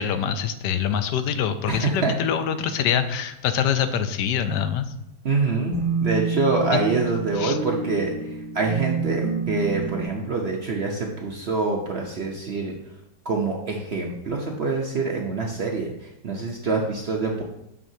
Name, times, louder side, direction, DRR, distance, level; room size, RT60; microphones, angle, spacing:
voice 1, 0.0-4.8 6.7-6.8 7.4-7.6, left 8 dB, 80° left, 10 dB, 1.2 m, -24 dB
voice 2, 1.7-2.1 5.2-12.7 13.2-17.4, right 3 dB, 55° right, 0 dB, 0.7 m, -25 dB
sound 1, 5.7-10.1, right 4 dB, 15° left, 3.1 m, -28 dB
9.1 x 6.5 x 2.7 m, 0.84 s
omnidirectional pair, 1.9 m